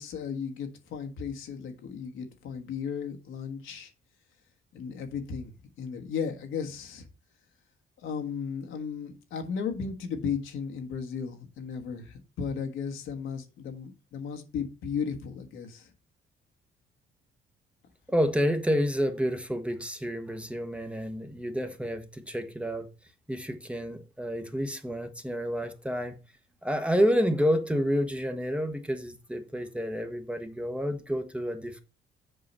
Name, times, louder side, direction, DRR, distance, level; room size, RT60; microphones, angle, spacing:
voice 1, 0.0-3.9 4.7-7.1 8.0-15.9, left 6 dB, 80° left, 1.5 m, -35 dB
voice 2, 18.1-22.9 23.3-26.2 26.6-31.8, equal, 5° right, 1.0 m, -29 dB
7.6 x 4.8 x 5.4 m
cardioid pair, 90°, 20 cm